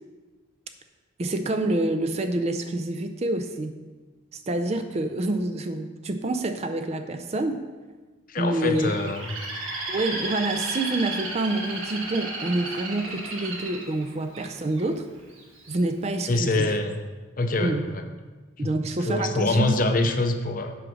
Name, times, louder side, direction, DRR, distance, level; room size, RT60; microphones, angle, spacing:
voice 1, 1.2-3.8 4.3-7.6 8.4-8.9 9.9-15.0 15.7-16.7 17.6-17.9 18.6-19.9, right 2 dB, 30° right, 7 dB, 0.4 m, -27 dB
voice 2, 8.3-9.4 16.3-17.0 17.4-18.0 18.6-18.7 19.1-20.8, left 2 dB, 40° left, 6 dB, 0.6 m, -25 dB
Bird, 8.7-14.8 15.4-15.8, right 2 dB, 80° right, 1.5 m, -33 dB
7.7 x 4.9 x 6.2 m, 1.3 s
head